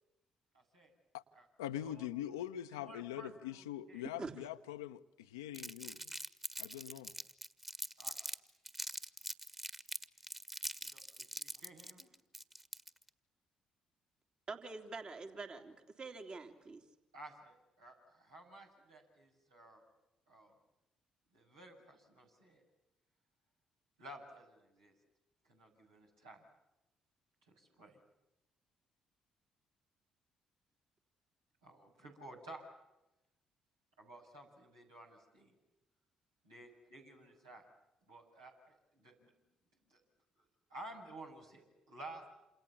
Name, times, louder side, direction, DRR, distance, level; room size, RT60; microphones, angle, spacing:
voice 1, 0.5-0.9 1.3-1.4 1.8-2.1 2.7-4.0 8.0-8.1 10.9-12.1 17.1-19.8 20.3-20.5 21.3-22.6 24.0-24.9 25.5-26.4 27.5-28.0 31.6-32.7 34.0-35.5 36.4-37.6 38.1-38.5 38.9-39.3 39.9-40.0 40.7-42.3, right 1 dB, 85° right, 7.4 m, -54 dB
voice 2, 1.6-6.1 6.6-7.1, left 12 dB, 85° left, 0.9 m, -43 dB
Crumpling crinkling, 5.5-8.4 8.7-13.1, right 1 dB, 10° right, 1.8 m, -43 dB
voice 3, 14.5-16.8, right 3 dB, 40° right, 3.2 m, -45 dB
28.5 x 28.0 x 7.2 m
hypercardioid pair, 45°, 2 cm